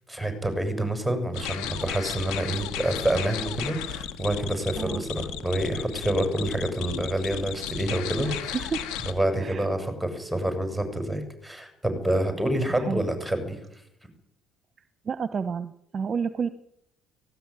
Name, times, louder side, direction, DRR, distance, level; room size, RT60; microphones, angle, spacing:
voice 1, 0.1-8.7 9.1-13.6, right 1 dB, ahead, 7 dB, 6.9 m, -27 dB
sound 1, 1.3-9.1, left 9 dB, 80° left, 2.0 m, -34 dB
voice 2, 15.0-16.5, right 6 dB, 35° right, 12 dB, 1.1 m, -30 dB
17.5 x 17.5 x 9.9 m, 0.75 s
supercardioid pair, 95°, 0 cm